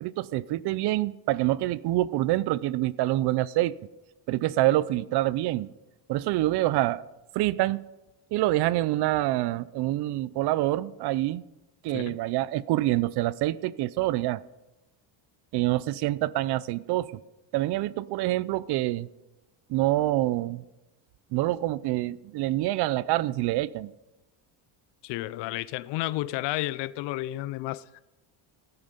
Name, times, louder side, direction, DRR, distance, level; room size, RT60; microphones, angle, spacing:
voice 1, 0.0-3.8 4.3-5.7 6.1-7.0 7.3-7.8 8.3-11.4 11.8-14.4 15.5-17.2 17.5-19.1 19.7-20.6 21.3-23.9, right 16 dB, 60° right, 0.6 m, -26 dB
voice 2, 25.0-28.0, left 17 dB, 65° left, 0.6 m, -32 dB
15.0 x 9.6 x 5.3 m
cardioid pair, 145°, 45 cm